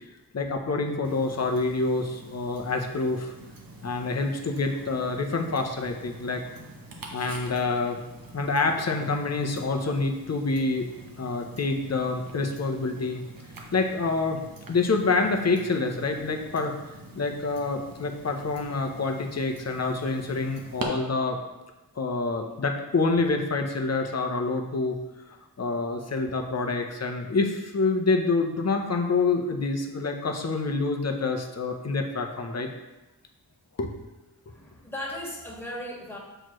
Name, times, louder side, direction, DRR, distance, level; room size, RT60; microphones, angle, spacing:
voice 1, 0.3-3.3 3.8-6.4 7.1-8.0 8.3-10.9 11.2-13.2 13.7-14.4 14.7-16.7 17.1-21.4 22.0-25.0 25.6-32.7 33.8-33.9, left 3 dB, 40° left, 3 dB, 0.8 m, -27 dB
Tick-tock, 1.0-20.8, right 2 dB, 60° right, 1.0 m, -45 dB
voice 2, 34.5-36.2, left 1 dB, 5° left, -6 dB, 1.9 m, -37 dB
7.7 x 4.3 x 3.1 m, 1.1 s
wide cardioid pair, 90°, 38 cm